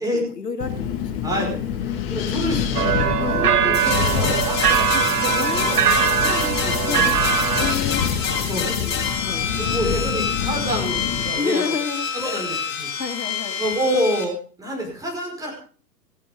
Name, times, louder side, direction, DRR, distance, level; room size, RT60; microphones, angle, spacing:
voice 1, 0.1-1.5 3.2-3.5 5.2-6.5 6.9-7.3 7.6-8.0 8.6-9.5 11.4-12.6 13.0-13.6, left 5 dB, 70° left, 4 dB, 2.7 m, -31 dB
Wind, 0.6-11.3, left 8 dB, 35° left, 2.0 m, -27 dB
voice 2, 1.2-1.6 2.1-4.8 6.1-7.1 8.5-8.7 9.5-11.6 12.1-12.9 13.6-15.5, right 1 dB, 5° right, -1 dB, 5.2 m, -27 dB
sound 1, 2.7-7.7, right 8 dB, 65° right, 1.6 m, -21 dB
sound 2, 3.7-14.2, left 6 dB, 50° left, 4.1 m, -27 dB
17.5 x 16.0 x 3.7 m, 0.41 s
figure-of-eight pair, 115°, 50 cm